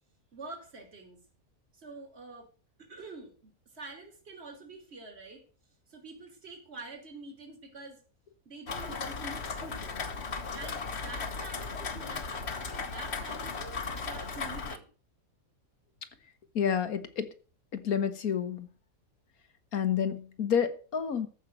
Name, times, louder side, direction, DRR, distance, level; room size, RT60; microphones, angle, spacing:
voice 1, 0.3-1.2 1.7-2.5 2.8-5.4 5.9-8.0 8.4-10.0 10.5-14.9, right 3 dB, 45° right, 3.1 m, -46 dB
Rain, 8.7-14.8, left 4 dB, 50° left, 1.5 m, -36 dB
voice 2, 16.6-17.3 17.7-18.7 19.7-21.3, left 7 dB, 80° left, 1.8 m, -29 dB
14.0 x 5.9 x 7.8 m
omnidirectional pair, 1.5 m